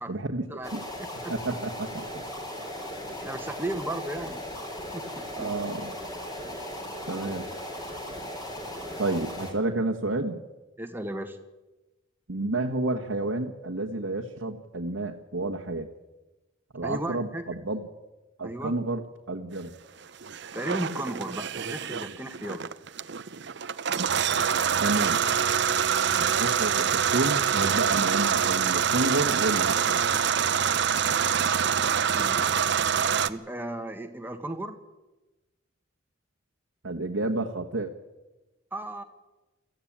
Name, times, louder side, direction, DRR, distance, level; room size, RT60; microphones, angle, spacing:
voice 1, 0.1-0.5 0.7-0.8 1.3-2.2 5.4-5.9 7.1-7.5 9.0-10.4 12.3-15.9 16.7-17.8 18.4-19.7 24.8-25.2 26.1-30.0 36.8-37.9, right 2 dB, 80° right, 1 dB, 1.4 m, -30 dB
sound 1, 0.6-9.5, left 1 dB, 20° left, 3.9 m, -37 dB
voice 2, 1.0-1.3 3.2-4.5 4.9-5.5 10.8-11.4 16.8-17.4 18.4-18.7 20.5-22.7 32.1-32.9 33.3-34.7 38.7-39.0, right 1 dB, 10° right, 6 dB, 1.6 m, -35 dB
sound 2, 20.2-33.3, right 7 dB, 60° right, 0.7 m, -25 dB
21.5 x 14.5 x 8.8 m, 1.1 s
head